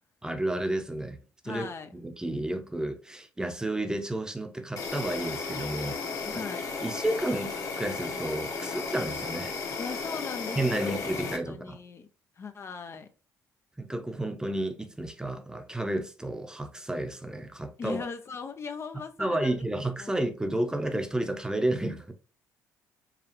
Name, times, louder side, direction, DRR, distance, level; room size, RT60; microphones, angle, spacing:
voice 1, 0.2-1.2 1.4-6.4 6.8-9.5 10.6-11.8 13.8-18.0 19.2-22.1, right 1 dB, 10° right, 0.7 m, -31 dB
voice 2, 1.4-1.9 6.2-6.7 9.8-11.0 11.5-12.1 12.4-13.1 17.8-19.6 20.0-20.1, left 5 dB, 40° left, 0.5 m, -38 dB
Insect, 4.8-11.4, left 4 dB, 55° left, 1.2 m, -34 dB
4.8 x 2.4 x 3.0 m
supercardioid pair, 75°, 7 cm